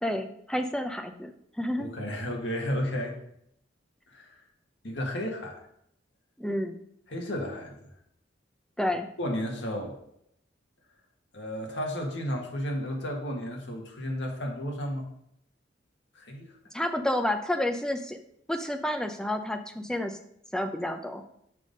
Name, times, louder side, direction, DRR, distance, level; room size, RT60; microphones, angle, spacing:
voice 1, 0.0-1.9 6.4-6.8 8.8-9.1 16.7-18.2 18.5-20.2 20.5-21.2, left 1 dB, 5° left, 5 dB, 0.6 m, -30 dB
voice 2, 1.8-3.2 4.1-4.3 4.8-5.6 7.1-7.8 9.2-9.9 11.3-15.1 16.1-16.5, equal, 75° left, 1 dB, 1.8 m, -32 dB
6.7 x 5.5 x 5.2 m, 0.73 s
head